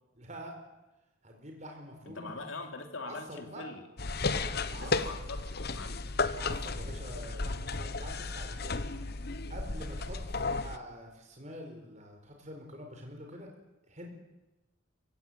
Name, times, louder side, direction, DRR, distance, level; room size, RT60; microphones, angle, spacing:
voice 1, 0.1-0.6 1.2-2.3 3.0-3.6 4.3-4.9 6.4-8.8 9.5-13.5 13.9-14.1, equal, 35° right, 2 dB, 4.6 m, -46 dB
voice 2, 2.0-3.9 4.8-6.1, left 3 dB, 70° left, 4 dB, 3.0 m, -42 dB
sound 1, 4.0-10.8, left 3 dB, 50° left, 1.0 m, -34 dB
25.5 x 16.0 x 8.8 m, 1.0 s
head